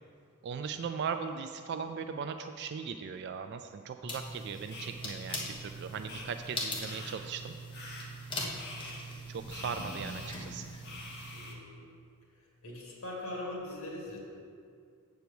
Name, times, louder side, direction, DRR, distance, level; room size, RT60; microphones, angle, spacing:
voice 1, 0.4-7.5 9.3-10.7, right 6 dB, 50° right, 8 dB, 0.3 m, -38 dB
sound 1, 4.0-11.5, right 5 dB, ahead, 0.8 m, -47 dB
sound 2, 4.1-11.4, left 2 dB, 25° left, 1.2 m, -42 dB
sound 3, 4.7-4.9 5.3-5.4 6.1-6.2 6.8-7.1 7.7-8.0 8.6-9.0 9.5-10.3 10.8-11.5, left 2 dB, 55° left, 1.5 m, -45 dB
voice 2, 11.3-11.9 12.6-14.2, left 1 dB, 75° left, -2 dB, 2.1 m, -41 dB
8.1 x 4.6 x 6.9 m, 2.3 s
head